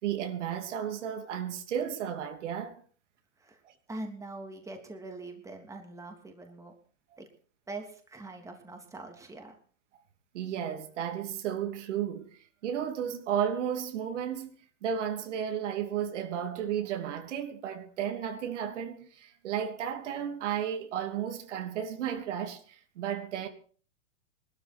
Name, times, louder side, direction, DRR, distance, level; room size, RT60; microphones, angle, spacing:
voice 1, 0.0-2.8 3.6-3.7 10.3-14.6 14.8-23.5, right 9 dB, 70° right, 3.0 m, -33 dB
voice 2, 3.9-6.7 7.2-7.3 7.7-9.6, right 2 dB, 10° right, 3.0 m, -43 dB
20.5 x 12.5 x 4.5 m
hypercardioid pair, 125°, 37 cm